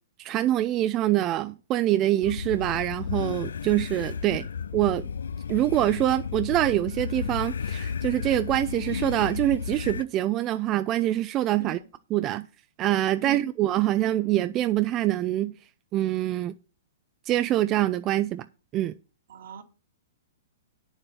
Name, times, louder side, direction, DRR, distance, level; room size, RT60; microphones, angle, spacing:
voice 1, 0.2-4.5 4.7-5.1 5.5-11.8 12.1-12.5 12.8-15.5 15.9-16.5 17.3-18.5 18.7-18.9, right 14 dB, 30° right, 0.5 m, -25 dB
sound 1, 2.2-10.0, left 6 dB, 80° left, 0.4 m, -33 dB
voice 2, 19.3-19.6, right 6 dB, 70° right, 2.3 m, -38 dB
8.9 x 7.1 x 5.5 m
hypercardioid pair, 130°, 0 cm